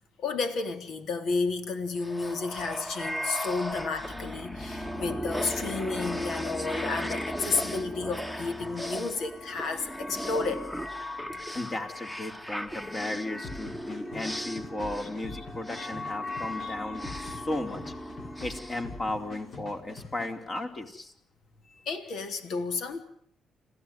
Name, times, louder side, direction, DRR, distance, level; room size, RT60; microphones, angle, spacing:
voice 1, 0.2-10.6 15.8-15.9 16.6-16.7 21.9-23.0, left 4 dB, 75° left, 8 dB, 3.5 m, -32 dB
sound 1, 2.0-19.6, equal, 10° left, 1.6 m, -36 dB
voice 2, 11.5-17.9 18.4-21.1, left 2 dB, 35° left, 5 dB, 4.3 m, -35 dB
sound 2, 13.4-20.6, left 3 dB, 50° left, 4.4 m, -45 dB
27.5 x 15.5 x 9.3 m, 0.68 s
cardioid pair, 90°, 0 cm